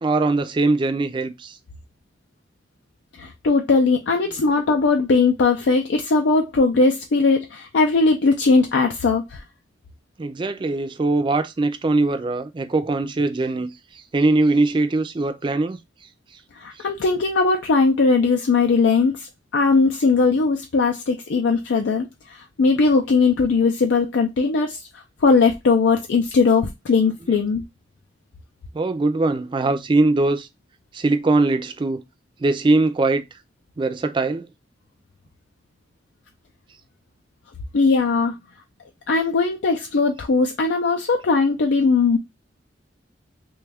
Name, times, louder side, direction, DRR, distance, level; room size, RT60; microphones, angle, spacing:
voice 1, 0.0-1.6 10.2-15.8 16.8-16.9 28.7-30.5 30.9-32.0 32.4-33.2 33.8-34.5, right 2 dB, 25° right, 0.3 m, -21 dB
voice 2, 3.1-9.4 16.6-27.6 37.7-38.4 39.1-42.2, left 4 dB, 90° left, 0.4 m, -19 dB
3.1 x 2.3 x 3.3 m
head